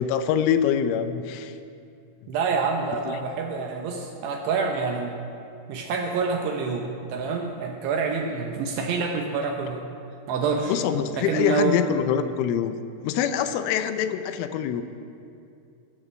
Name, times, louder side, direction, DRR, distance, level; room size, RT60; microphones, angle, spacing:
voice 1, 0.0-1.6 3.1-3.2 10.7-12.7 13.0-14.8, left 9 dB, 85° left, 10 dB, 3.3 m, -25 dB
voice 2, 2.3-5.2 5.7-9.9 10.3-10.8 11.2-11.8, right 4 dB, 75° right, 2 dB, 2.6 m, -27 dB
20.5 x 13.5 x 3.3 m, 2.5 s
omnidirectional pair, 5.7 m